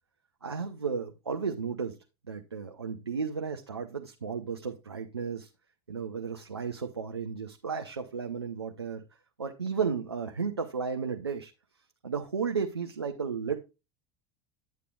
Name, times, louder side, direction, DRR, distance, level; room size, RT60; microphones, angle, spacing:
voice 1, 0.4-2.0 2.3-5.5 5.9-9.0 9.4-11.5 12.0-13.6, right 6 dB, 85° right, 0.7 m, -33 dB
9.4 x 8.3 x 2.4 m
figure-of-eight pair, 75°, 13 cm